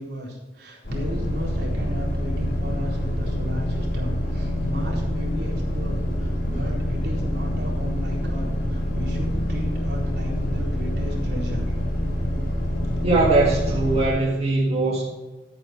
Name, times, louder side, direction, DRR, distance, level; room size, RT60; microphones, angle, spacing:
voice 1, 0.0-11.7, equal, 65° right, -3 dB, 4.1 m, -35 dB
sound 1, 0.8-14.1, equal, 60° left, 4.3 m, -26 dB
voice 2, 13.0-15.1, right 2 dB, 35° right, -4 dB, 1.9 m, -21 dB
14.0 x 8.7 x 4.4 m, 1.2 s
head